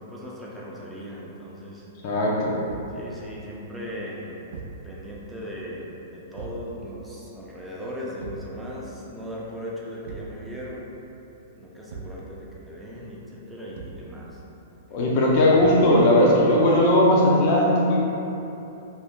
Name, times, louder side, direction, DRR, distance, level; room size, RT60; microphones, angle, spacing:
voice 1, 0.0-1.9 2.9-4.4 4.8-10.9 11.5-14.4, equal, 5° right, -6 dB, 0.6 m, -38 dB
voice 2, 2.0-2.6 14.9-18.0, left 1 dB, 45° left, -5 dB, 0.5 m, -18 dB
Thump thud, 2.7-3.0 4.5-4.9 6.3-6.7 8.2-8.5 10.0-10.4 11.9-12.2 13.7-14.1 15.6-15.9, right 4 dB, 65° right, 0.3 m, -39 dB
2.6 x 2.1 x 3.5 m, 2.9 s
hypercardioid pair, 115°, 0 cm